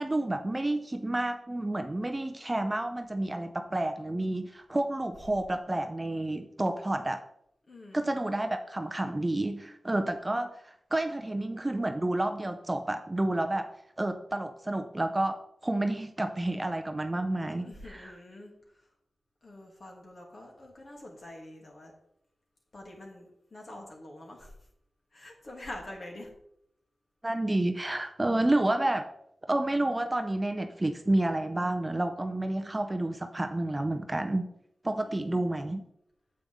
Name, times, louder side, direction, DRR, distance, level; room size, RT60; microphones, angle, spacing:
voice 1, 0.0-7.2 7.9-13.7 14.0-18.1 27.2-29.0 29.5-34.5 34.8-35.8, right 1 dB, 20° right, 6 dB, 0.6 m, -30 dB
voice 2, 7.7-8.1 17.5-18.5 19.4-21.9 22.7-24.5 25.1-26.3 35.0-35.5, left 1 dB, 50° left, -1 dB, 2.5 m, -46 dB
8.9 x 7.7 x 3.5 m, 0.74 s
wide cardioid pair, 110°, 0 cm